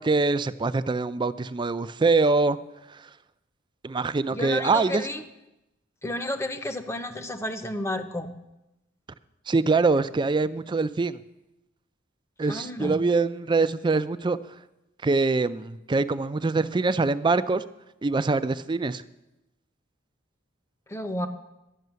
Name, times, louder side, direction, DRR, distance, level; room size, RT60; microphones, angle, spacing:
voice 1, 0.0-2.6 2.9-3.0 3.8-5.1 9.5-11.2 12.4-14.4 15.0-17.6 18.0-19.0, right 3 dB, 25° right, 13 dB, 0.4 m, -24 dB
voice 2, 4.3-5.2 6.0-8.3 12.5-13.0 20.9-21.3, left 1 dB, 15° left, 8 dB, 0.8 m, -31 dB
12.0 x 6.6 x 9.3 m, 0.94 s
head